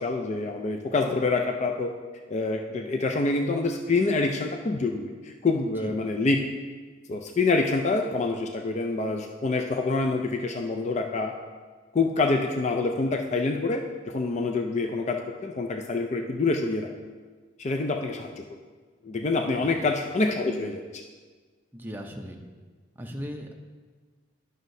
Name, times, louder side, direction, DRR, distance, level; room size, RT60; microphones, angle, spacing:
voice 1, 0.0-1.9 2.3-6.4 7.1-11.3 11.9-16.9 17.6-18.5 19.0-20.8, left 3 dB, 35° left, 3 dB, 0.4 m, -26 dB
voice 2, 5.6-6.0 19.6-19.7 21.7-22.4 22.9-23.6, equal, 10° right, 2 dB, 0.6 m, -38 dB
11.0 x 6.3 x 2.7 m, 1.4 s
head